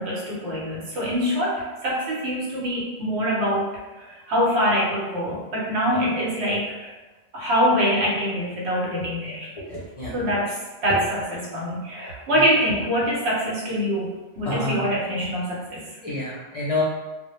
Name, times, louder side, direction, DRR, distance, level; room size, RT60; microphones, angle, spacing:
voice 1, 0.0-3.7 4.0-6.9 7.3-9.5 10.1-15.8, equal, 85° right, -4 dB, 1.0 m, -24 dB
voice 2, 9.7-10.1 14.4-14.9 16.0-16.8, left 2 dB, 45° left, -7 dB, 0.5 m, -28 dB
2.1 x 2.0 x 2.9 m, 1.2 s
omnidirectional pair, 1.1 m